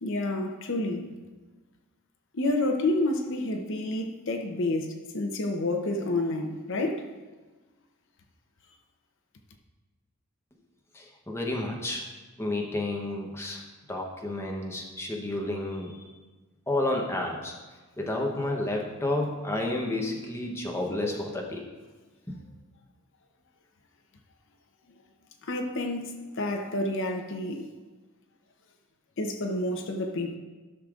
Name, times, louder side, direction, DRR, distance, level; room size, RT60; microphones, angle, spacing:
voice 1, 0.0-1.1 2.3-7.0 25.5-26.1 26.4-27.7 29.2-30.3, left 2 dB, 55° left, 0.7 m, -29 dB
voice 2, 10.9-12.0 12.4-13.6 13.9-16.0 16.7-17.6 18.0-21.6 22.3-22.4, left 2 dB, 10° left, 0.9 m, -31 dB
14.0 x 6.5 x 2.5 m
head